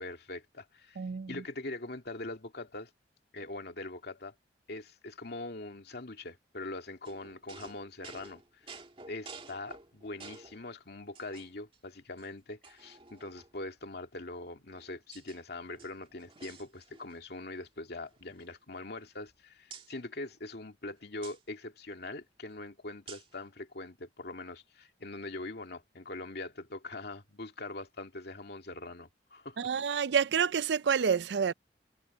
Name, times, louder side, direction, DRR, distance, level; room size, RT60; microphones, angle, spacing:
voice 1, 0.0-1.0 1.3-2.9 3.3-4.3 4.7-8.8 9.1-29.7, left 2 dB, 60° left, 2.5 m, -42 dB
voice 2, 1.0-1.3 29.6-31.5, right 7 dB, 65° right, 0.4 m, -28 dB
sound 1, 7.0-10.6 11.2-11.8 12.2-12.3 12.6-13.7 14.5-15.4 15.7-17.2 17.5-17.7 18.0-19.3 19.7-19.9 21.2-21.4 23.1-23.4, right 4 dB, 30° right, 2.1 m, -51 dB
head